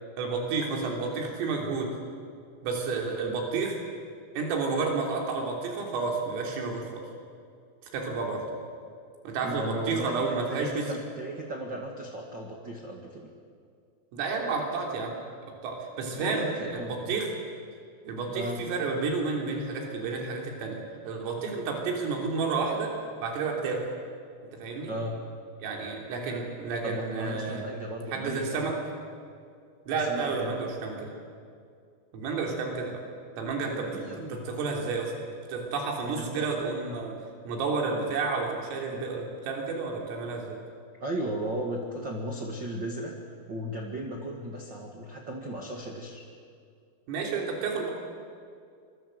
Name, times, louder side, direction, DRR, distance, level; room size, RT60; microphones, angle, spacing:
voice 1, 0.2-1.9 2.6-3.8 4.4-7.0 7.9-8.4 9.3-11.0 14.1-15.2 15.6-16.4 16.7-17.3 18.1-22.9 23.2-23.9 24.5-24.9 25.6-27.6 28.1-28.8 29.9-31.1 32.1-33.0 33.4-37.2 37.4-40.6 47.1-47.9, right 4 dB, 80° right, 1 dB, 6.1 m, -31 dB
voice 2, 9.4-13.3 16.1-17.1 18.3-18.6 24.9-25.2 26.8-28.7 29.9-30.6 33.9-34.5 36.2-36.5 41.0-43.1 43.5-46.2, right 1 dB, 50° right, 0 dB, 1.3 m, -35 dB
26.5 x 24.0 x 7.9 m, 2.3 s
omnidirectional pair, 5.8 m